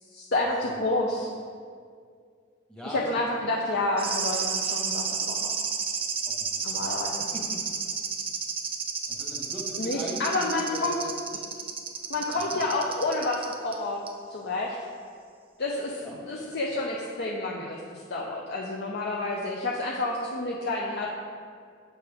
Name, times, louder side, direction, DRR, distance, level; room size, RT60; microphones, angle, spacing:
voice 1, 0.1-1.3 2.8-5.6 6.6-7.3 9.8-10.9 12.1-14.0 14.3-14.8 15.6-21.1, left 2 dB, 55° left, -2 dB, 0.5 m, -29 dB
voice 2, 2.7-3.1 6.3-6.9 7.2-7.6 9.1-10.9 12.5-12.6 16.0-16.1, equal, 5° left, -4 dB, 1.2 m, -40 dB
sound 1, 4.0-13.8 14.1-14.2, right 6 dB, 30° right, 0.4 m, -31 dB
6.9 x 5.7 x 3.4 m, 2.1 s
head